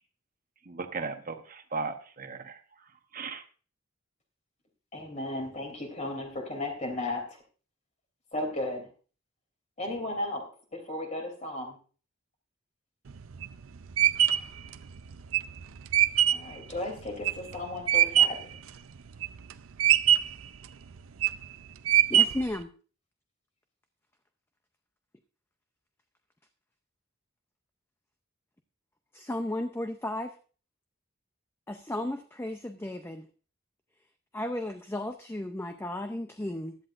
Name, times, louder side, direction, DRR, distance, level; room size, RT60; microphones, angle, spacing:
voice 1, 0.7-2.6 3.1-3.4, right 4 dB, 40° right, 6 dB, 1.0 m, -36 dB
voice 2, 4.9-7.4 8.3-8.9 9.8-10.4 10.7-11.8 16.3-18.6, left 1 dB, 35° left, 4 dB, 3.0 m, -35 dB
sound 1, 13.1-18.5 19.0-19.5 19.8-20.5 21.0-21.4 21.9-22.6, right 11 dB, 80° right, 0.5 m, -23 dB
voice 3, 22.1-22.7 29.1-30.3 31.7-33.3 34.3-36.8, left 1 dB, 10° left, 7 dB, 0.5 m, -34 dB
15.5 x 11.0 x 2.5 m, 0.38 s
head